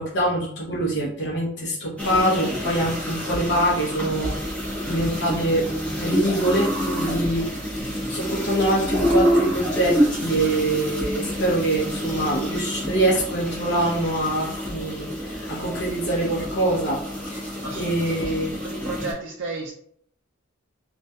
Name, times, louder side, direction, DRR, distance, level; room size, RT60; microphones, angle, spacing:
voice 1, 0.0-4.4 4.9-5.7 6.0-7.4 7.9-17.0 17.3-17.4 17.7-18.5, right 1 dB, 55° left, -5 dB, 0.6 m, -24 dB
sound 1, 2.0-19.1, equal, 5° left, 0.6 m, -27 dB
voice 2, 17.6-19.7, right 3 dB, 60° right, -1 dB, 0.4 m, -34 dB
2.3 x 2.2 x 2.6 m, 0.64 s
head